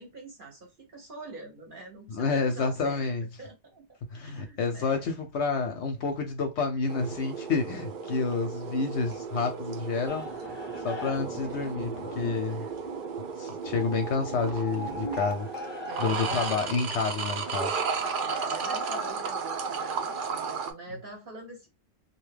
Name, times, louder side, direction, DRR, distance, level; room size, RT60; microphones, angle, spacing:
voice 1, 0.0-3.1 3.4-5.0 12.4-12.8 15.8-16.8 18.2-21.7, right 2 dB, 50° right, 0.7 m, -45 dB
voice 2, 2.1-3.3 4.1-10.5 10.8-12.7 13.4-17.8, left 4 dB, 65° left, 0.8 m, -29 dB
sound 1, 6.9-20.7, right 5 dB, 80° right, 0.4 m, -34 dB
sound 2, 10.1-19.1, left 1 dB, 30° left, 0.5 m, -39 dB
2.7 x 2.2 x 3.2 m
omnidirectional pair, 1.4 m